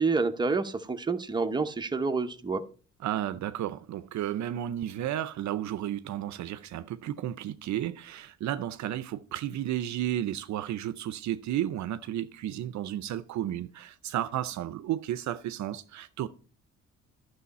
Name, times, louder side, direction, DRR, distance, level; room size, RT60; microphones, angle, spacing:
voice 1, 0.0-2.6, right 4 dB, 15° right, 0.9 m, -28 dB
voice 2, 3.0-16.3, right 12 dB, 70° right, 0.6 m, -33 dB
11.0 x 6.3 x 4.1 m
cardioid pair, 90°, 30 cm